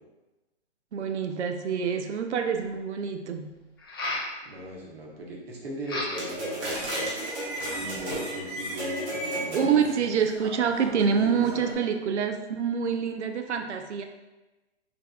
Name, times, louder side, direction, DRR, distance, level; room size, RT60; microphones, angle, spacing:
voice 1, 0.9-3.6 9.5-14.0, right 6 dB, 85° right, 6 dB, 0.5 m, -26 dB
sound 1, 2.1-2.2 3.8-4.3 5.8-6.4 6.8-7.4, left 2 dB, 20° left, 0.4 m, -33 dB
voice 2, 4.4-7.1 7.7-9.8 10.9-11.5, equal, 60° right, -2 dB, 1.1 m, -38 dB
sound 2, 6.1-11.7, right 1 dB, 25° right, 1.1 m, -34 dB
5.0 x 3.4 x 2.3 m, 1.1 s
hypercardioid pair, 160°, 34 cm